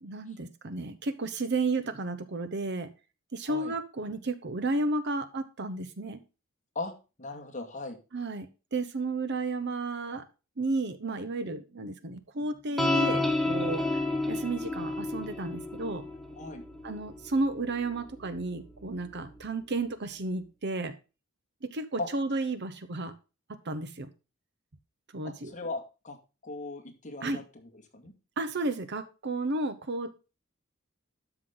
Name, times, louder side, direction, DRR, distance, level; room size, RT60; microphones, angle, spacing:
voice 1, 0.0-2.9 3.3-6.2 8.1-10.2 10.6-13.8 14.3-16.0 16.8-20.9 21.6-23.1 23.6-24.1 25.1-25.5 27.2-27.4 28.4-30.3, right 2 dB, 55° right, 12 dB, 0.9 m, -32 dB
voice 2, 7.2-8.0 16.4-16.6 22.0-22.1 25.2-26.2 26.4-28.1, left 3 dB, 35° left, 2 dB, 2.1 m, -38 dB
sound 1, 12.8-19.4, left 2 dB, ahead, 0.9 m, -32 dB
12.5 x 5.9 x 3.8 m, 0.30 s
head